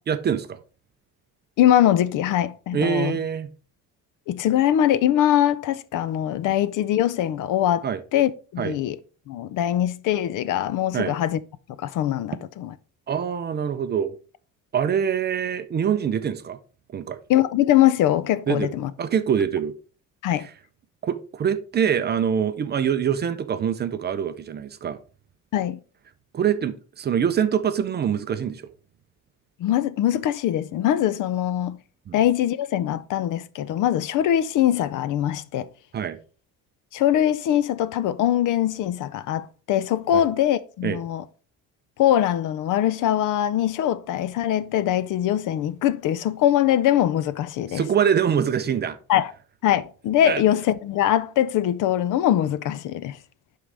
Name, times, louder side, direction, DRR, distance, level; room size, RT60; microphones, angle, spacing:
voice 1, 0.1-0.6 2.7-3.5 7.8-8.0 8.6-8.7 10.9-11.2 13.1-14.1 14.7-16.6 16.9-17.2 18.5-18.7 19.0-19.7 20.4-20.5 21.0-25.0 26.3-28.6 32.1-32.2 35.9-36.2 40.1-40.2 40.8-41.0 47.7-49.0 50.2-50.4, right 8 dB, 30° right, 0.4 m, -24 dB
voice 2, 1.6-3.2 4.3-7.9 8.1-9.0 9.3-11.4 11.8-12.7 17.3-18.9 20.2-20.5 25.5-25.8 29.6-31.8 32.1-35.7 36.9-41.2 42.0-47.8 49.1-49.3 49.6-53.2, left 11 dB, 60° left, 0.5 m, -22 dB
11.0 x 3.8 x 3.3 m
cardioid pair, 155°, 35 cm